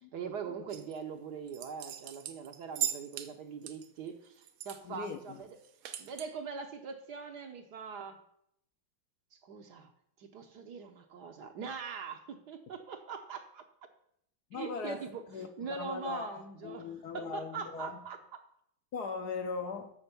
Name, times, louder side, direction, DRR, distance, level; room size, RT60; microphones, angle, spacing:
voice 1, 0.1-5.6 6.0-8.2 9.4-9.9 10.2-13.6 14.5-18.4, right 6 dB, 60° right, 1.3 m, -42 dB
sound 1, 0.7-1.0 1.5-3.3 3.6-4.8 5.1-5.2 5.5-6.3, right 10 dB, 80° right, 1.6 m, -38 dB
voice 2, 4.8-5.4 14.5-18.0 18.9-19.9, left 5 dB, 65° left, 1.1 m, -40 dB
8.0 x 6.3 x 6.8 m
omnidirectional pair, 2.3 m